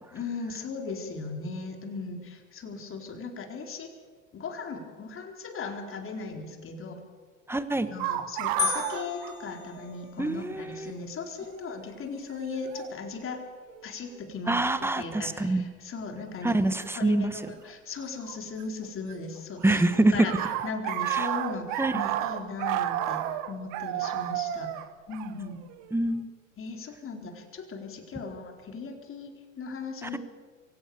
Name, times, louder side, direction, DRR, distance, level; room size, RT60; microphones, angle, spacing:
voice 1, 0.1-3.9 4.3-7.0 7.9-13.4 13.8-14.6 15.0-19.8 20.1-25.6 26.6-30.2, left 4 dB, 35° left, 3 dB, 4.0 m, -38 dB
voice 2, 7.5-7.9 10.2-10.9 14.5-15.7 16.4-17.4 19.6-20.3 21.1-21.3 21.8-22.0 25.9-26.3 30.0-30.2, right 2 dB, 5° right, 12 dB, 1.5 m, -25 dB
sound 1, 8.0-10.1 10.4-10.5 11.4-11.7 12.7-12.9 13.7-14.2 16.8-16.9 18.2-19.1 19.4-26.0, right 12 dB, 55° right, 1.5 m, -32 dB
sound 2, 8.6-10.4, left 12 dB, 65° left, 2.1 m, -34 dB
23.5 x 17.0 x 7.0 m, 1.5 s
hypercardioid pair, 90°, 39 cm